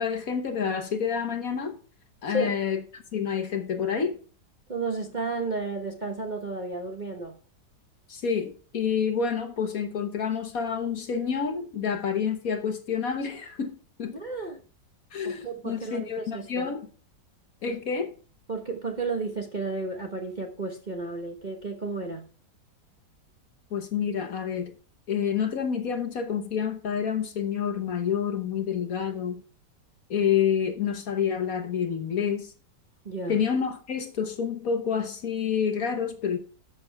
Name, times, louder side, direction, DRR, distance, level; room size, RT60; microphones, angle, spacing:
voice 1, 0.0-1.8 2.2-4.2 8.1-14.1 15.1-16.9 17.6-18.1 23.7-24.7 25.1-29.4 30.1-32.5 33.3-36.4, left 7 dB, 55° left, 1.3 m, -28 dB
voice 2, 4.7-7.4 14.1-14.6 15.2-16.7 17.7-17.8 18.5-22.3 33.0-33.4, right 3 dB, 30° right, 1.0 m, -32 dB
12.5 x 6.9 x 3.4 m
omnidirectional pair, 2.0 m